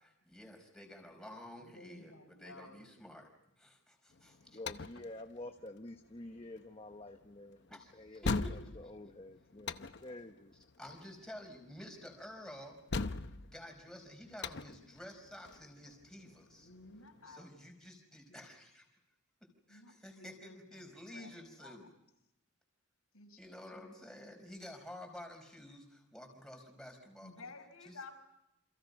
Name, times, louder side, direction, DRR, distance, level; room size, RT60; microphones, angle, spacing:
voice 1, 0.0-3.3 3.6-4.6 7.7-7.9 8.2-8.5 10.8-12.8 13.5-16.7 17.3-18.8 19.4-21.9 23.4-27.5 27.8-28.1, left 1 dB, 5° left, 2 dB, 5.0 m, -51 dB
voice 2, 1.6-2.9 16.6-17.4 18.3-18.5 19.7-21.3 21.6-21.8 23.1-23.4 27.2-28.1, left 3 dB, 75° left, 3 dB, 5.7 m, -54 dB
sound 1, 4.1-17.4, left 3 dB, 50° left, 0.8 m, -42 dB
voice 3, 4.5-10.5, left 1 dB, 25° left, 5 dB, 1.0 m, -49 dB
29.0 x 27.5 x 5.4 m, 0.86 s
head